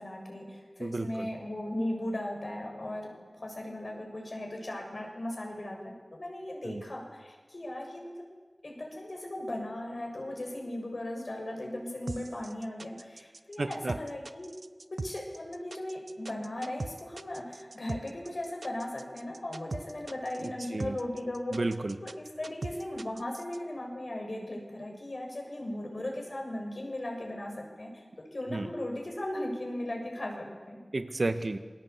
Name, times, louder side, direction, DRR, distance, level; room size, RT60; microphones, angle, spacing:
voice 1, 0.0-8.1 8.6-14.5 14.9-21.6 22.0-28.0 28.3-30.8, left 1 dB, 70° left, 1 dB, 7.0 m, -37 dB
voice 2, 0.8-1.3 6.6-6.8 13.6-14.0 20.4-21.0 21.5-22.0 28.5-28.7 30.9-31.6, right 2 dB, 75° right, 9 dB, 1.5 m, -32 dB
sound 1, 12.1-23.6, right 3 dB, 90° right, 0.9 m, -40 dB
27.5 x 22.0 x 8.3 m, 1.4 s
wide cardioid pair, 55°, 0 cm